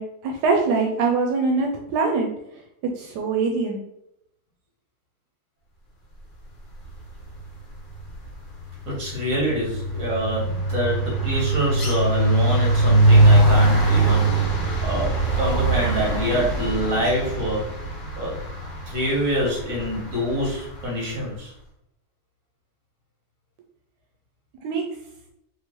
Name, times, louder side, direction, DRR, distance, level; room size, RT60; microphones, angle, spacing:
voice 1, 0.0-2.6 3.0-3.8 24.6-24.8, right 4 dB, 90° right, 2 dB, 1.2 m, -23 dB
sound 1, 7.1-7.5 7.8-20.9, right 2 dB, 45° left, 0.7 m, -22 dB
voice 2, 8.8-14.5 14.8-17.7 18.2-18.3 18.9-21.5, equal, 60° right, -3 dB, 1.7 m, -26 dB
3.6 x 2.6 x 3.0 m, 0.79 s
omnidirectional pair, 1.7 m